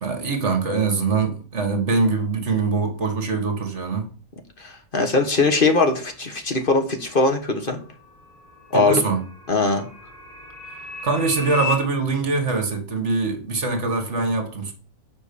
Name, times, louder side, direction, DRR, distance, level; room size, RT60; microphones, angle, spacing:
voice 1, 0.0-4.1 8.7-9.2 11.0-14.7, right 4 dB, 55° right, 1.8 m, -23 dB
voice 2, 4.6-7.8 8.7-9.0 9.5-9.9, left 3 dB, 40° left, 1.4 m, -20 dB
sound 1, 7.5-11.8, left 5 dB, 85° left, 4.2 m, -35 dB
7.5 x 5.2 x 6.9 m
omnidirectional pair, 1.5 m